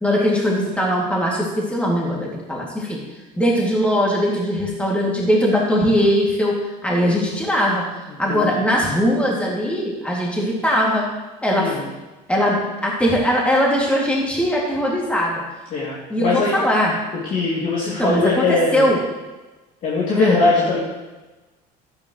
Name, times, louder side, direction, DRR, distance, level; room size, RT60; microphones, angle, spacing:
voice 1, 0.0-3.0 3.4-7.9 8.2-11.1 11.4-11.8 12.3-15.4 16.1-17.0 17.9-19.0 20.2-20.4, equal, 5° left, -3 dB, 2.5 m, -20 dB
voice 2, 11.6-11.9 15.7-16.6 17.3-18.9 19.8-20.8, left 3 dB, 50° left, -7 dB, 2.8 m, -21 dB
12.5 x 10.5 x 3.2 m, 1.2 s
cardioid pair, 115°, 18 cm